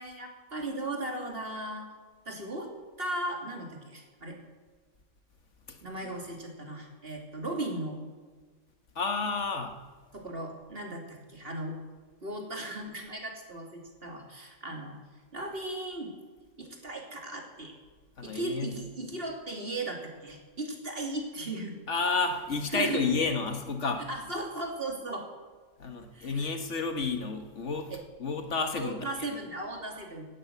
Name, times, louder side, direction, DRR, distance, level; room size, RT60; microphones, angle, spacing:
voice 1, 0.0-1.9 2.2-2.7 3.0-4.4 5.8-8.0 10.1-11.8 12.2-15.0 15.3-16.1 16.6-17.7 18.2-21.8 22.7-23.0 24.1-25.2 26.1-26.5 27.9-28.0 28.8-30.3, right 1 dB, 55° right, 1 dB, 3.2 m, -37 dB
voice 2, 9.0-9.7 18.2-18.7 21.9-24.0 25.8-27.9 28.2-29.1, left 4 dB, 75° left, 5 dB, 1.8 m, -31 dB
17.5 x 9.7 x 8.2 m, 1.5 s
omnidirectional pair, 1.2 m